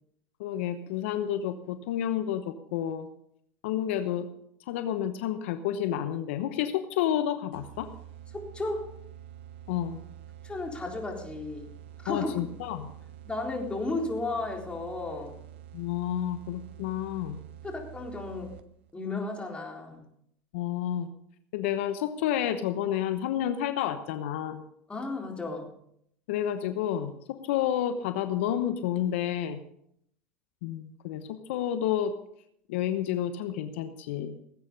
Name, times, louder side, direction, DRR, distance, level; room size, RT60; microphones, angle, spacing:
voice 1, 0.4-3.1 3.6-4.3 4.7-7.9 9.7-10.0 12.1-12.9 15.7-17.4 20.5-21.1 21.5-24.6 26.3-29.6 30.6-32.1 32.7-34.4, left 10 dB, 80° left, 9 dB, 1.0 m, -30 dB
sound 1, 7.5-18.9, right 11 dB, 80° right, 0.7 m, -47 dB
voice 2, 8.3-8.9 10.4-11.7 12.0-12.4 13.3-15.3 17.6-18.5 18.9-20.0 24.9-25.7, left 2 dB, 15° left, 1 dB, 4.0 m, -34 dB
18.5 x 8.7 x 5.3 m, 0.71 s
hypercardioid pair, 90°, 7 cm